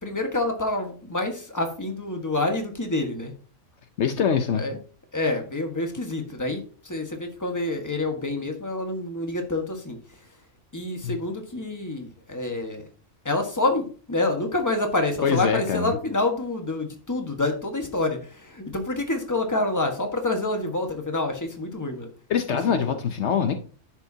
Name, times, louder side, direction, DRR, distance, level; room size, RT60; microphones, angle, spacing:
voice 1, 0.0-3.3 4.5-4.8 5.1-10.0 10.7-12.8 13.2-22.1 22.6-23.0, left 2 dB, 15° left, 1.4 m, -27 dB
voice 2, 4.0-4.6 11.0-11.2 15.2-15.9 22.3-23.5, left 7 dB, 70° left, 1.0 m, -23 dB
10.5 x 7.4 x 2.8 m
omnidirectional pair, 1.3 m